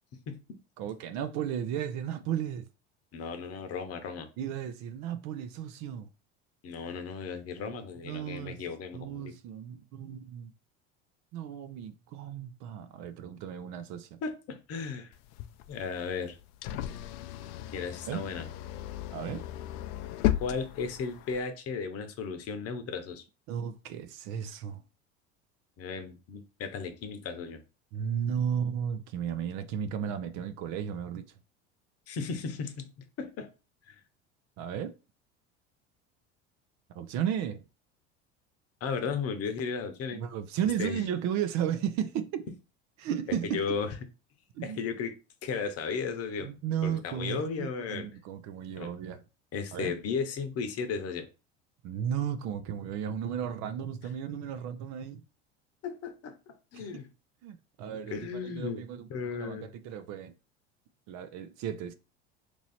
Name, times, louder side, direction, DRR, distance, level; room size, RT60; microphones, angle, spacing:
voice 1, 0.8-2.7 4.4-6.1 7.6-8.6 8.9-10.5 11.3-14.2 18.1-18.2 19.1-19.4 23.5-24.8 27.9-31.3 34.6-34.9 36.9-37.6 40.1-42.5 43.0-43.7 44.5-44.8 46.4-49.2 49.7-49.9 51.8-55.2 56.7-56.8 57.4-58.2 58.4-60.3 61.1-61.9, right 9 dB, 55° right, 0.5 m, -34 dB
voice 2, 3.1-4.3 6.6-9.3 14.2-15.1 15.7-16.4 17.7-18.5 20.4-23.2 25.8-27.6 32.1-32.9 33.2-33.5 33.9-34.0 38.8-40.2 40.8-41.0 43.3-43.9 44.6-45.1 45.4-46.5 46.8-48.1 48.8-48.9 49.5-51.3 55.8-56.3 56.7-57.1 58.1-58.8 59.1-59.7, left 5 dB, 45° left, 0.9 m, -35 dB
sound 1, 15.1-21.4, left 14 dB, 60° left, 0.5 m, -35 dB
3.1 x 2.7 x 4.1 m
hypercardioid pair, 85°, 34 cm